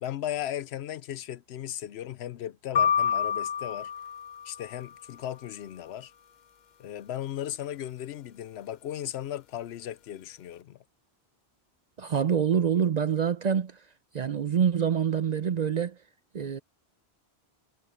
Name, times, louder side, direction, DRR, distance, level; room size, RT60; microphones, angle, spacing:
voice 1, 0.0-3.9 4.4-6.1 6.8-10.8, left 11 dB, 80° left, 0.9 m, -36 dB
sound 1, 2.8-4.9, left 8 dB, 55° left, 0.6 m, -28 dB
voice 2, 12.0-13.8 14.1-16.0 16.3-16.6, right 7 dB, 50° right, 0.6 m, -26 dB
omnidirectional pair, 1.1 m